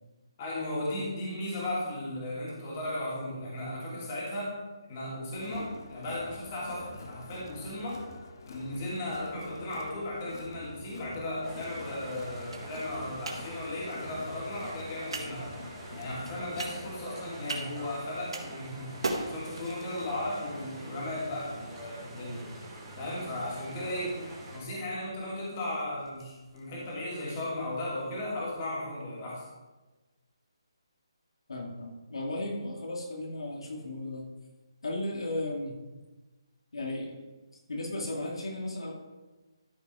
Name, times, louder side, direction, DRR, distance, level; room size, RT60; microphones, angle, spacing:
voice 1, 0.4-4.6 4.9-8.0 8.5-15.5 15.9-22.5 23.0-24.2 24.5-29.5, left 1 dB, 25° left, -5 dB, 2.8 m, -36 dB
Crowd, 5.3-17.1, left 3 dB, 45° left, 1.2 m, -47 dB
sound 1, 10.6-28.5, right 2 dB, 75° right, 1.8 m, -44 dB
sound 2, 11.4-24.6, right 1 dB, 10° right, 1.8 m, -45 dB
voice 2, 31.5-34.2 34.8-35.7 36.7-37.2 37.7-38.9, left 1 dB, 80° left, 0 dB, 2.3 m, -35 dB
13.0 x 5.4 x 4.8 m, 1.2 s
hypercardioid pair, 170°, 3 cm